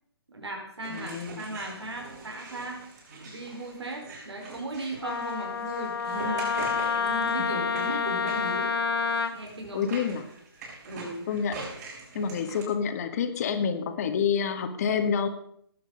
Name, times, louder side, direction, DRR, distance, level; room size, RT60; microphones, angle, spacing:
voice 1, 0.3-2.8 3.2-6.5 6.9-8.7 9.3-9.8 10.8-11.2 12.2-12.4, right 1 dB, 80° right, 0 dB, 4.8 m, -37 dB
sound 1, 0.8-12.6, right 3 dB, 40° right, 6.3 m, -44 dB
voice 2, 0.9-1.5 7.4-7.5 9.7-10.3 11.3-11.7 12.1-15.3, left 7 dB, 35° left, 9 dB, 1.6 m, -28 dB
Wind instrument woodwind instrument, 5.0-9.3, left 6 dB, 60° left, 1.3 m, -28 dB
18.5 x 9.0 x 5.3 m, 0.68 s
hypercardioid pair, 150°, 14 cm